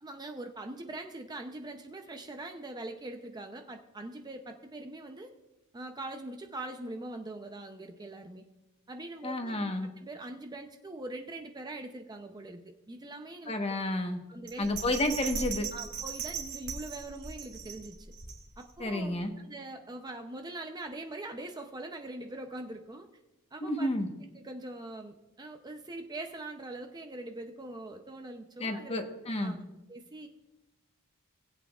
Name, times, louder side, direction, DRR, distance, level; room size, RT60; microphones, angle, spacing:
voice 1, 0.0-5.3 5.7-8.5 8.9-12.6 12.9-13.8 14.3-14.7 15.7-18.1 18.6-23.1 23.5-23.9 24.3-29.0 29.4-29.6 29.9-30.3, right 2 dB, 20° right, 5 dB, 0.6 m, -42 dB
voice 2, 9.2-9.9 13.5-14.2 14.6-15.7 18.8-19.3 23.6-24.1 28.6-29.6, left 1 dB, 25° left, 5 dB, 1.2 m, -31 dB
Bell, 14.5-18.8 19.2-19.3, right 5 dB, 75° right, 2.0 m, -39 dB
20.0 x 8.4 x 2.4 m, 1.0 s
head